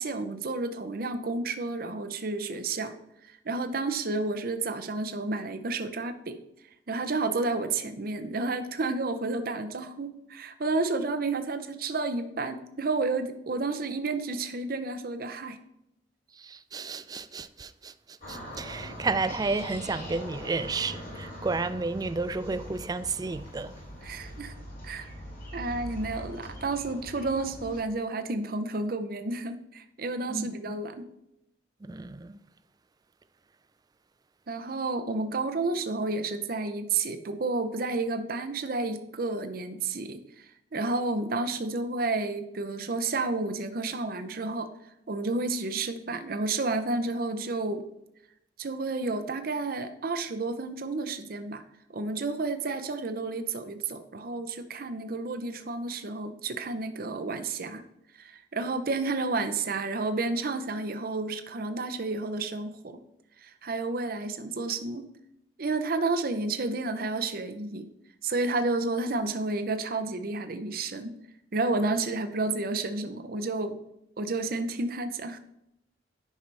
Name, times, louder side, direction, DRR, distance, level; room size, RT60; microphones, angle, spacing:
voice 1, 0.0-2.9 3.3-6.4 6.9-15.6 24.0-24.5 24.8-25.1 25.5-31.1 34.5-44.7 45.1-47.9 48.6-51.6 51.9-57.8 58.2-63.0 63.4-65.1 65.6-67.9 68.2-71.2 71.5-73.8 74.2-75.4, right 3 dB, 55° right, 0.7 m, -31 dB
voice 2, 16.4-17.9 18.3-23.7 30.3-30.7 31.9-32.4, right 3 dB, 20° right, 0.3 m, -32 dB
sound 1, 18.2-27.8, equal, 55° left, 3.3 m, -42 dB
10.5 x 5.6 x 3.3 m
head